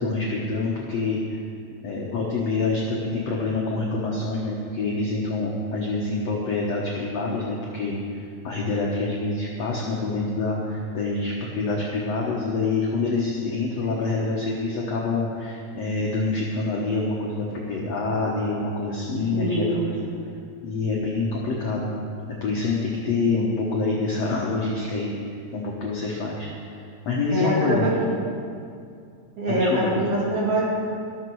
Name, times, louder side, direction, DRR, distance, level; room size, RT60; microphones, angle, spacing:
voice 1, 0.0-1.4 1.8-19.7 20.6-21.9 22.4-25.2 25.5-27.8 29.5-29.9, left 3 dB, 65° left, -3 dB, 1.6 m, -26 dB
voice 2, 19.3-19.6 19.9-20.0 27.3-27.9 29.4-30.6, right 1 dB, 65° right, -5 dB, 4.4 m, -24 dB
13.5 x 13.0 x 4.7 m, 2.4 s
omnidirectional pair, 4.7 m